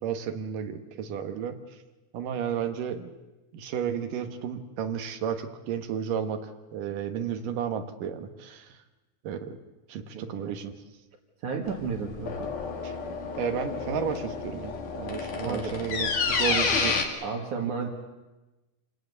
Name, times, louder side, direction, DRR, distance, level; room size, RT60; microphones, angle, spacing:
voice 1, 0.0-1.6 2.1-3.1 3.5-8.8 9.2-9.6 9.9-10.7 12.8-12.9 13.4-17.0, right 8 dB, 80° right, 8 dB, 3.0 m, -32 dB
voice 2, 10.1-10.5 11.4-12.5 15.4-15.7 16.5-16.6 17.2-17.9, right 5 dB, 65° right, -1 dB, 3.3 m, -33 dB
sound 1, 11.7-17.0, left 5 dB, 75° left, 3.9 m, -30 dB
27.5 x 19.0 x 8.2 m, 1.1 s
omnidirectional pair, 3.7 m